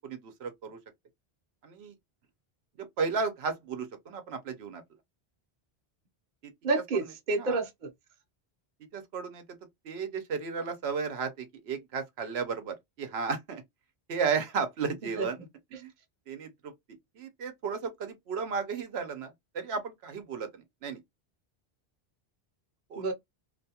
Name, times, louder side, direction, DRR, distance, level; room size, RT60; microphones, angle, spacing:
voice 1, 0.0-0.8 1.6-1.9 3.0-4.8 7.4-7.6 8.9-9.4 9.8-13.6 14.1-15.4 15.7-15.9 16.3-16.7 17.2-21.0 22.9-23.1, right 5 dB, 80° right, 0.9 m, -34 dB
voice 2, 6.6-7.9 15.0-15.3 15.7-15.8 23.0-23.1, right 3 dB, 50° right, 0.8 m, -30 dB
2.5 x 2.3 x 2.7 m
omnidirectional pair, 1.1 m